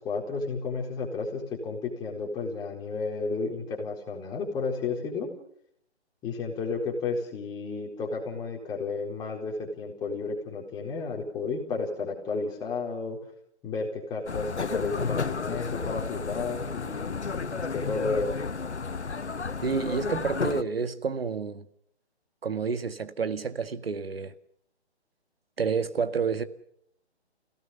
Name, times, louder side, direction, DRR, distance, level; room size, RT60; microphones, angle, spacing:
voice 1, 0.0-5.3 6.2-13.2 13.6-18.3, left 4 dB, 10° left, 4.4 m, -32 dB
sound 1, 14.3-20.6, left 4 dB, 80° left, 0.9 m, -32 dB
voice 2, 19.6-21.7 22.4-24.3 25.6-26.4, right 5 dB, 60° right, 1.9 m, -29 dB
29.5 x 18.0 x 6.8 m
figure-of-eight pair, 140°, 33 cm